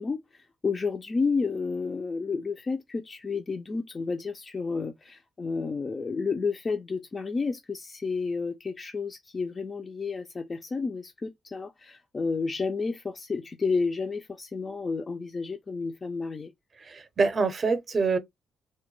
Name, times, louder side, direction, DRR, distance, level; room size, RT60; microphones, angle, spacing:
voice 1, 0.0-16.5, left 4 dB, 30° left, 0.3 m, -31 dB
voice 2, 16.8-18.2, right 4 dB, 35° right, 0.5 m, -25 dB
2.2 x 2.1 x 3.0 m
cardioid pair, 90°, 0 cm